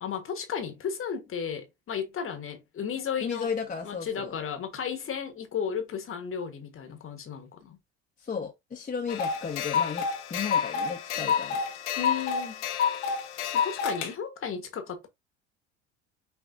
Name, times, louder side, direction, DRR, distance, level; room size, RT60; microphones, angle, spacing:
voice 1, 0.0-3.5 3.8-7.8 12.0-12.6 13.5-15.1, left 7 dB, 40° left, 1.4 m, -34 dB
voice 2, 3.2-4.4 8.2-11.6, left 6 dB, 20° left, 1.1 m, -34 dB
sound 1, 9.1-14.1, left 6 dB, 80° left, 1.0 m, -29 dB
6.0 x 3.4 x 2.6 m
hypercardioid pair, 70°, 35 cm